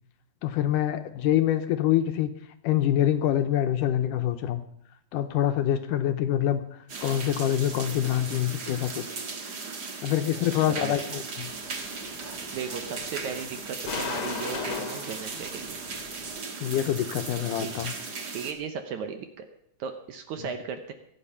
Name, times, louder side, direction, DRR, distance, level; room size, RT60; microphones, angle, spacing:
voice 1, 0.4-2.3 2.6-4.6 5.1-6.6 7.0-9.0 10.0-11.5 16.6-17.9, left 11 dB, 75° left, 8 dB, 2.1 m, -25 dB
sound 1, 6.9-18.5, right 4 dB, 55° right, 1.1 m, -37 dB
voice 2, 10.3-11.0 12.5-15.8 17.6-17.7 18.3-19.5 19.8-20.9, right 6 dB, 70° right, 8 dB, 2.0 m, -36 dB
sound 2, 11.4-16.4, left 6 dB, 55° left, 1.8 m, -38 dB
22.5 x 8.6 x 5.6 m, 0.74 s
omnidirectional pair, 4.1 m